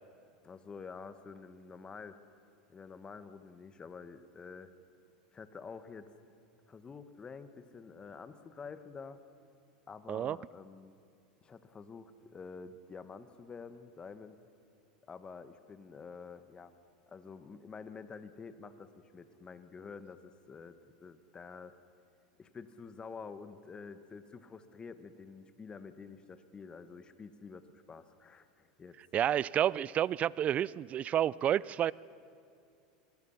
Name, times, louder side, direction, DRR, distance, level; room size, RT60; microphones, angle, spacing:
voice 1, 0.4-2.2 2.7-4.7 5.3-6.1 6.7-9.2 9.9-10.9 11.4-14.4 15.1-16.7 17.1-21.8 22.4-29.0, left 5 dB, 25° left, 11 dB, 1.3 m, -48 dB
voice 2, 29.1-31.9, right 10 dB, 35° right, 22 dB, 0.4 m, -30 dB
26.0 x 20.5 x 5.8 m, 2.5 s
hypercardioid pair, 105°, 4 cm